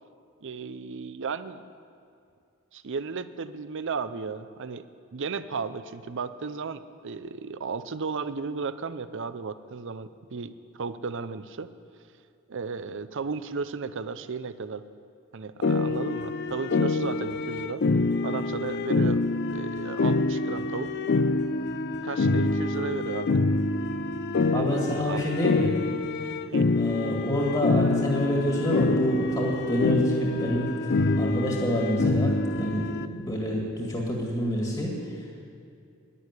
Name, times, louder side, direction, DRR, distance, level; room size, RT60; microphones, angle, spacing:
voice 1, 0.4-1.6 2.7-4.8 5.1-11.7 12.5-14.8 15.3-17.8 18.2-19.2 19.5-20.9 22.0-23.4 24.5-25.3 26.5-26.7, right 5 dB, 60° right, 12 dB, 0.6 m, -34 dB
sound 1, 15.6-33.1, left 3 dB, 50° left, 0.5 m, -26 dB
voice 2, 24.5-25.7 26.1-26.2 26.7-35.2, left 1 dB, 25° left, -2 dB, 1.9 m, -28 dB
11.0 x 10.0 x 9.7 m, 2.4 s
head